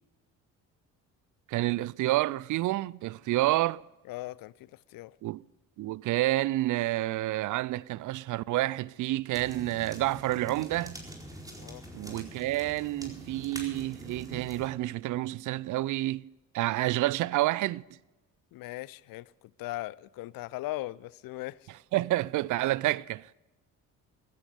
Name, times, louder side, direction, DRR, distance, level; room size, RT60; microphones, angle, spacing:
voice 1, 1.5-3.8 5.2-5.4 5.8-11.0 11.9-16.2 16.5-17.8 21.9-23.3, right 16 dB, 50° right, 0.5 m, -29 dB
voice 2, 4.1-5.2 11.5-11.8 18.5-19.3 19.6-21.7, left 17 dB, 55° left, 0.6 m, -39 dB
sound 1, 9.3-14.7, right 1 dB, 10° right, 4.4 m, -45 dB
15.0 x 14.0 x 5.2 m
hypercardioid pair, 50°, 41 cm